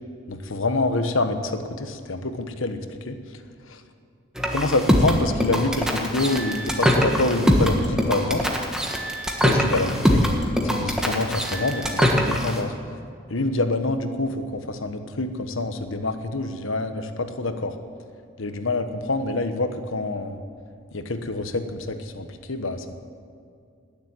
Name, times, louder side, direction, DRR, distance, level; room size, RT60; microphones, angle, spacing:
voice 1, 0.3-2.8 3.1-3.2 3.6-3.8 4.5-8.4 9.4-12.7 13.3-17.8 18.4-20.4 20.9-22.9, left 2 dB, 70° left, 8 dB, 1.2 m, -26 dB
sound 1, 4.4-12.6, equal, 5° right, 1.4 m, -22 dB
19.5 x 7.3 x 9.7 m, 2.4 s
head